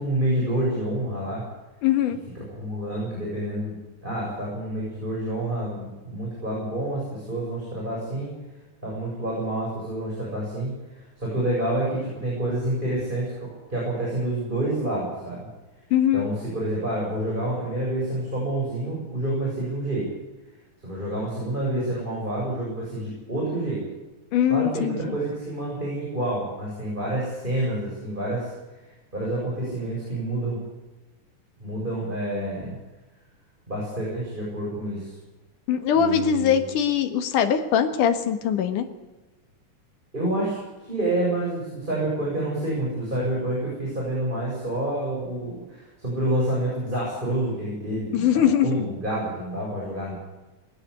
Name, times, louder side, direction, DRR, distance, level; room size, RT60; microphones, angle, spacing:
voice 1, 0.0-1.4 2.3-8.3 8.8-15.4 16.1-20.1 20.8-23.9 24.5-28.5 29.1-30.6 31.6-32.7 33.7-35.1 35.9-36.7 40.1-40.6 40.8-50.1, right 1 dB, 15° right, -5 dB, 7.7 m, -28 dB
voice 2, 1.8-2.2 15.9-16.3 24.3-25.0 35.7-38.9 48.1-48.8, left 9 dB, 80° left, 7 dB, 3.1 m, -21 dB
20.5 x 17.0 x 8.3 m, 1.1 s
omnidirectional pair, 3.6 m